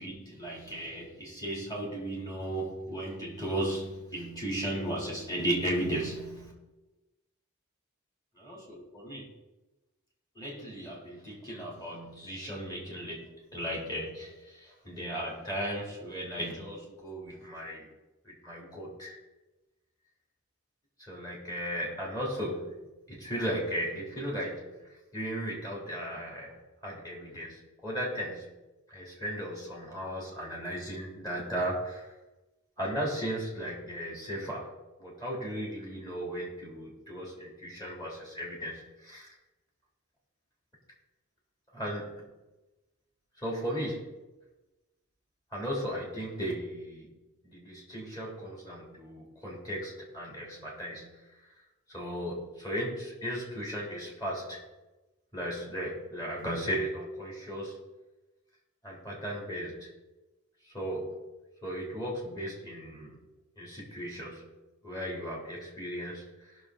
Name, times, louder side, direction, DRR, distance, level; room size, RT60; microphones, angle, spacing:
voice 1, 0.0-6.5 8.5-9.3 10.4-17.9 18.3-19.2 21.0-24.8 25.1-28.5 28.9-32.1 32.8-34.7 35.0-39.3 41.7-42.2 43.4-44.2 45.5-47.2 47.4-51.2 51.9-54.6 55.3-57.8 58.8-59.9 60.7-61.2 61.6-63.2 63.6-64.5 64.8-66.3, equal, 20° left, -3 dB, 3.5 m, -36 dB
18.5 x 6.4 x 4.1 m, 1.1 s
head